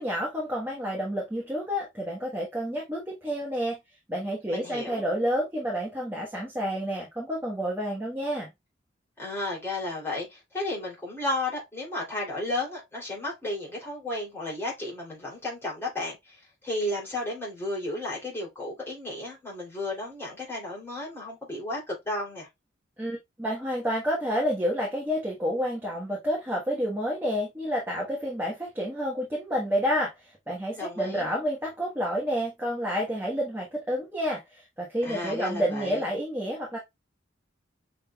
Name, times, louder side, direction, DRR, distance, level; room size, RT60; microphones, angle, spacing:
voice 1, 0.0-3.8 4.1-8.5 23.0-36.8, equal, 10° right, 1.3 m, -29 dB
voice 2, 4.5-5.0 9.2-22.5 30.7-31.3 35.0-36.0, left 2 dB, 10° left, 3.0 m, -33 dB
6.3 x 3.5 x 2.3 m
head